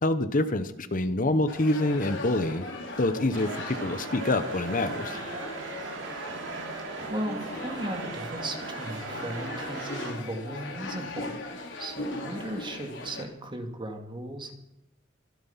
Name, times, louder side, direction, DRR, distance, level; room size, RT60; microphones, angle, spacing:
voice 1, 0.0-2.7 3.0-5.2, left 2 dB, 45° left, 11 dB, 0.9 m, -26 dB
cafe ambience barcelona, 1.5-13.2, left 2 dB, 75° left, 3.5 m, -39 dB
sound 1, 3.3-10.1, right 3 dB, 75° right, 3.1 m, -38 dB
voice 2, 7.1-14.5, right 1 dB, 25° right, 5 dB, 2.4 m, -36 dB
25.0 x 9.4 x 5.7 m, 0.87 s
head